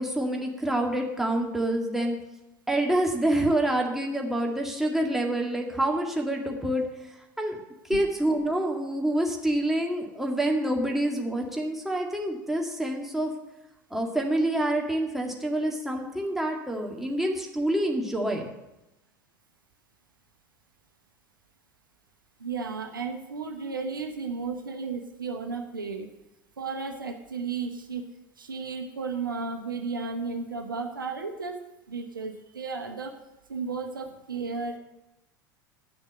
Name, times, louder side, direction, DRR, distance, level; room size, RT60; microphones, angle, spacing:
voice 1, 0.0-2.2 2.7-6.8 7.4-7.6 7.9-13.3 13.9-18.5, right 1 dB, 5° right, 0 dB, 1.9 m, -27 dB
voice 2, 22.4-26.1 26.6-28.0 28.4-31.6 31.9-33.1 33.5-34.8, right 4 dB, 80° right, 5 dB, 1.0 m, -33 dB
9.5 x 6.5 x 7.4 m, 0.93 s
figure-of-eight pair, 75°, 11 cm